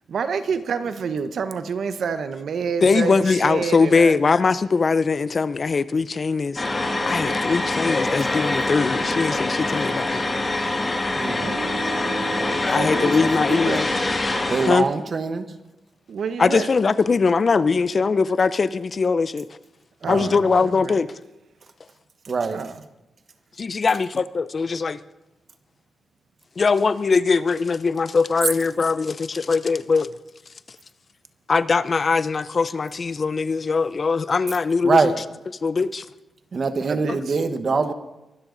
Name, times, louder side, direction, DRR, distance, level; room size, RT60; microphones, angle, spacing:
voice 1, 0.1-4.1 11.4-13.9 16.1-16.7 20.0-20.9 22.5-22.7 36.8-37.4, right 6 dB, 65° right, 10 dB, 1.0 m, -29 dB
voice 2, 2.8-10.2 12.7-13.9 14.7-14.9 16.4-19.5 20.1-21.1 23.6-25.0 26.6-30.1 31.5-35.1 35.6-36.1 37.1-37.2, left 4 dB, 40° left, 15 dB, 0.6 m, -21 dB
sound 1, 6.6-14.8, left 2 dB, 25° left, 2.9 m, -24 dB
voice 3, 11.2-11.6 14.5-15.5 20.0-20.2 22.3-22.6 34.8-35.1 36.5-37.9, right 4 dB, 45° right, 10 dB, 1.2 m, -23 dB
23.5 x 12.5 x 4.0 m, 0.99 s
cardioid pair, 105°, 0 cm